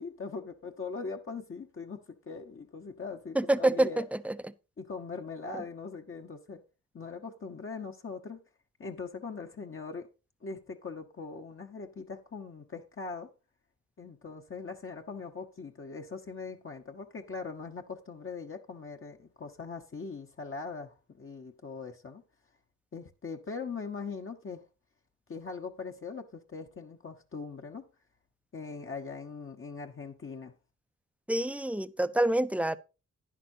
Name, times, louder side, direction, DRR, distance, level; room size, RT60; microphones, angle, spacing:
voice 1, 0.0-4.1 4.8-6.6 6.9-8.4 8.8-10.1 10.4-13.3 14.0-22.2 22.9-24.7 25.3-27.8 28.5-30.5, left 4 dB, 45° left, 1.2 m, -41 dB
voice 2, 3.3-4.3 31.3-32.8, right 1 dB, 5° right, 0.6 m, -27 dB
11.0 x 10.0 x 2.8 m
cardioid pair, 85°, 30 cm